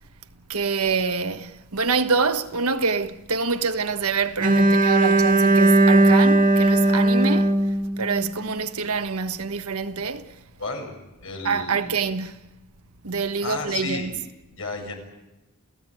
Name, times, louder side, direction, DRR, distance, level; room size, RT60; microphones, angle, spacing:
voice 1, 0.5-7.6 8.0-10.3 11.4-12.4 13.0-14.1, right 5 dB, 80° right, 1.4 m, -26 dB
Bowed string instrument, 4.4-8.5, right 2 dB, 35° right, 2.0 m, -18 dB
voice 2, 10.6-10.9 11.2-11.9 13.4-14.1 14.5-14.9, left 3 dB, 60° left, 7.0 m, -32 dB
29.0 x 16.0 x 9.2 m
head